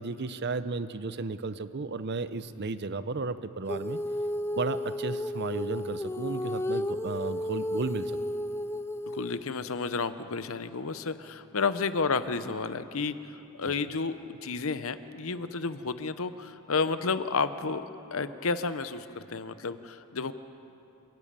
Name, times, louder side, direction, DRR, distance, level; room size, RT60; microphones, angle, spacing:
voice 1, 0.0-4.0 4.6-8.2 13.6-13.8, right 3 dB, 50° right, 13 dB, 0.6 m, -34 dB
Female singing, 3.7-9.4, left 1 dB, 10° left, 0.4 m, -33 dB
voice 2, 9.1-17.8 18.1-20.3, left 4 dB, 65° left, 12 dB, 0.8 m, -31 dB
28.5 x 10.5 x 8.8 m, 2.9 s
head